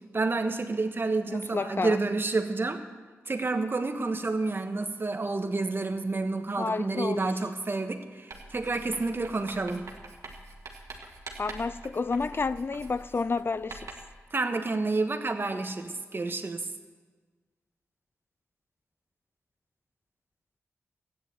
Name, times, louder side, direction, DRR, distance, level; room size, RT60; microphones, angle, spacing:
voice 1, 0.1-2.8 3.3-9.9 14.3-16.7, right 3 dB, 45° right, 1.4 m, -29 dB
voice 2, 1.3-2.0 6.6-7.3 11.4-13.9, left 4 dB, 45° left, 0.4 m, -30 dB
Writing, 8.3-14.2, right 3 dB, 85° right, 1.8 m, -45 dB
13.5 x 9.9 x 8.0 m
cardioid pair, 50°, 5 cm